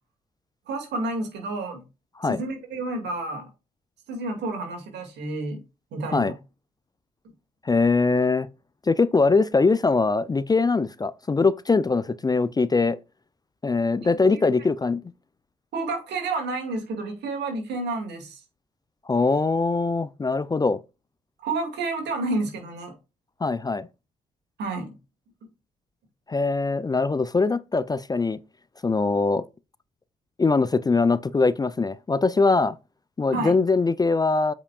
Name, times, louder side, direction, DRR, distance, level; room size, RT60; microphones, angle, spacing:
voice 1, 0.7-1.8 2.2-3.4 4.1-5.6 5.9-6.3 14.3-14.5 15.7-18.4 21.4-22.9 24.6-24.9 33.3-33.5, right 2 dB, 70° right, 2.2 m, -30 dB
voice 2, 7.6-8.5 8.9-13.0 13.6-15.0 19.1-20.8 23.4-23.9 26.3-28.4 28.8-29.4 30.4-32.8 33.2-34.5, left 3 dB, 20° left, 0.4 m, -22 dB
8.3 x 5.0 x 2.3 m
hypercardioid pair, 40°, 18 cm